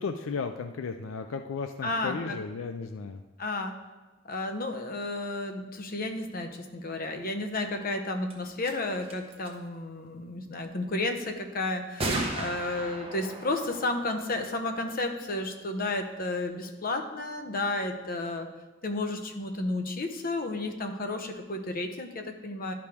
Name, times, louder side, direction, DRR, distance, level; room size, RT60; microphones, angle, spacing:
voice 1, 0.0-3.2, left 5 dB, 80° left, 7 dB, 0.4 m, -34 dB
voice 2, 1.8-2.4 3.4-3.7 4.2-18.5 18.8-22.7, left 2 dB, 45° left, 5 dB, 0.8 m, -32 dB
sound 1, 8.3-8.4 8.6-8.7 9.0-9.5 12.0-15.4, right 2 dB, 30° right, 1.0 m, -36 dB
11.5 x 4.9 x 3.5 m, 1.2 s
head